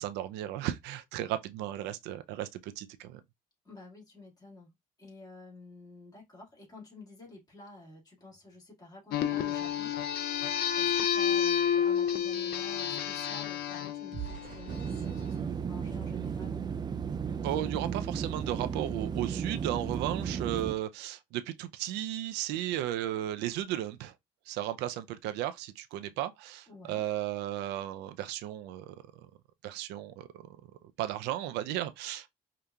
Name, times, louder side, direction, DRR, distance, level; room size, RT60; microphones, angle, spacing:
voice 1, 0.0-3.2 17.4-24.1 24.5-29.0 29.6-30.4 31.0-32.3, right 12 dB, 90° right, 0.5 m, -35 dB
voice 2, 3.6-9.9 10.7-16.6 26.0-26.2 26.7-27.1, left 2 dB, 20° left, 2.0 m, -51 dB
sound 1, 9.1-15.1, left 9 dB, 65° left, 0.5 m, -30 dB
sound 2, 11.6-17.0 17.5-17.7 18.1-18.3, right 9 dB, 45° right, 1.0 m, -49 dB
sound 3, 14.7-20.7, right 7 dB, 25° right, 0.4 m, -34 dB
5.0 x 2.8 x 2.3 m
cardioid pair, 110°, 17 cm